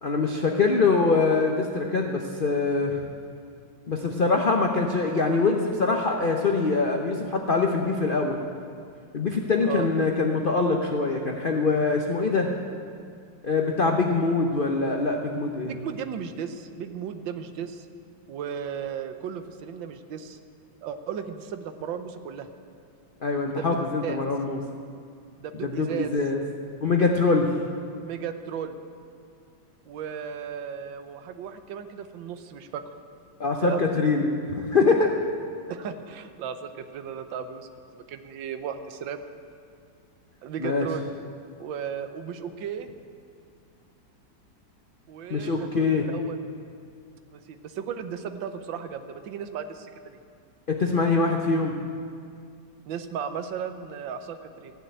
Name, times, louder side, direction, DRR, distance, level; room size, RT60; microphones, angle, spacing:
voice 1, 0.0-3.0 3.9-8.4 9.1-12.5 13.4-15.8 23.2-24.6 25.6-26.4 26.8-27.5 33.4-35.2 40.6-40.9 45.3-46.1 50.7-51.7, left 3 dB, 65° left, 2 dB, 0.5 m, -24 dB
voice 2, 15.7-17.9 18.3-20.4 20.8-22.5 23.5-24.2 25.4-26.1 28.0-28.8 29.8-32.8 33.6-33.9 35.7-39.2 40.4-41.3 41.6-42.9 45.1-46.4 47.3-50.2 52.9-54.7, right 7 dB, 75° right, 9 dB, 1.5 m, -35 dB
15.0 x 6.7 x 9.1 m, 2.3 s
omnidirectional pair, 2.1 m